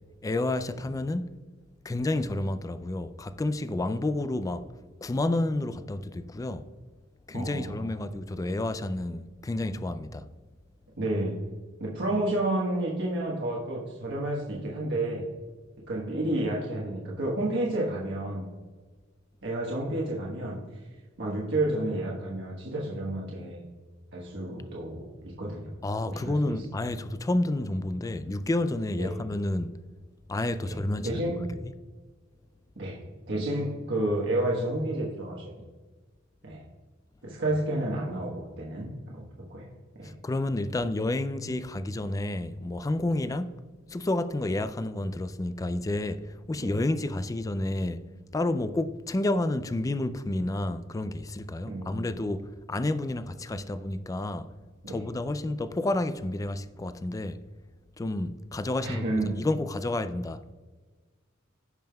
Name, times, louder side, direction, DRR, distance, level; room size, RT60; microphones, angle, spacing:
voice 1, 0.2-1.4 1.8-4.7 5.0-6.7 7.3-10.3 25.8-29.7 30.3-31.2 31.6-31.7 40.0-43.6 43.9-48.0 48.3-54.5 54.9-57.4 58.0-60.5, left 2 dB, 15° left, 0.3 m, -30 dB
voice 2, 7.3-7.9 11.0-11.4 11.8-15.2 15.9-18.5 19.4-20.6 21.2-23.6 24.1-25.0 25.4-25.7 26.1-26.6 29.0-29.2 30.6-30.8 31.0-31.4 32.8-33.0 33.3-35.5 36.4-36.6 37.2-39.2 39.5-39.7 40.0-40.1 46.6-46.7 51.6-52.0 54.8-55.0 58.8-59.3, right 1 dB, 65° right, 1.2 m, -30 dB
15.5 x 5.4 x 2.3 m
head